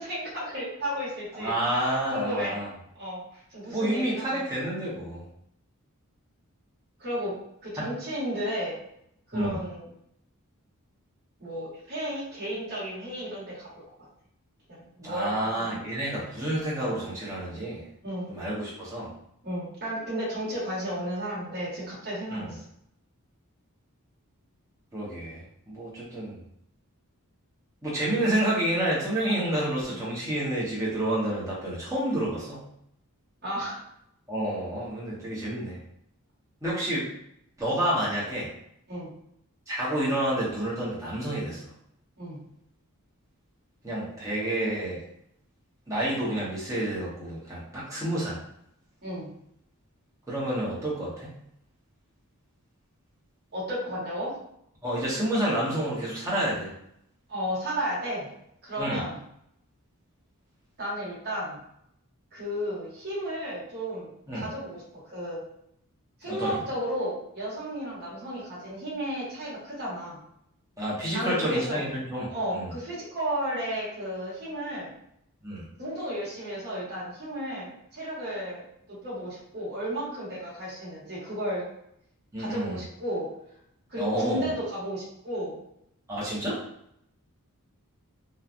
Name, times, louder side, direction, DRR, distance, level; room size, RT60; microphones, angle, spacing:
voice 1, 0.0-2.6 2.9-3.2 3.5-4.5 7.0-7.3 7.6-8.8 9.3-9.9 11.4-13.7 14.8-15.8 18.0-18.3 19.4-22.6 29.9-30.0 33.4-33.8 38.9-39.1 42.2-42.4 49.0-49.3 53.5-54.3 57.3-58.3 58.6-59.2 60.8-61.6 62.3-64.8 65.1-65.4 66.2-70.2 71.1-71.8 72.3-74.9 75.8-81.6 82.4-83.3 83.9-85.5, equal, 45° right, -7 dB, 1.3 m, -33 dB
voice 2, 1.3-2.7 3.7-5.2 7.8-7.9 9.3-9.6 15.0-17.8 18.3-19.1 22.3-22.5 24.9-26.4 27.8-32.6 34.3-35.8 36.6-37.1 37.6-38.5 39.7-41.6 43.8-45.0 45.9-48.4 50.3-51.3 54.8-56.7 58.8-59.0 64.3-64.5 66.3-66.6 70.8-72.7 75.4-75.7 82.3-82.8 84.0-84.5 86.1-86.6, right 1 dB, 15° right, -8 dB, 1.0 m, -29 dB
3.0 x 2.3 x 2.5 m, 0.74 s
head